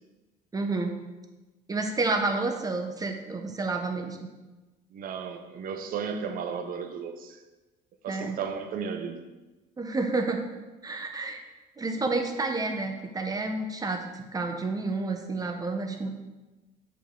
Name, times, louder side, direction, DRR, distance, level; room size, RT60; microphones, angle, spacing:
voice 1, 0.5-0.9 1.7-4.2 8.1-8.4 9.8-10.4 10.8-11.4 11.8-16.1, right 3 dB, 20° right, 4 dB, 0.8 m, -30 dB
voice 2, 4.9-7.4 8.0-9.2, right 6 dB, 60° right, 7 dB, 0.7 m, -34 dB
6.7 x 5.2 x 3.8 m, 1.1 s
cardioid pair, 110°, 17 cm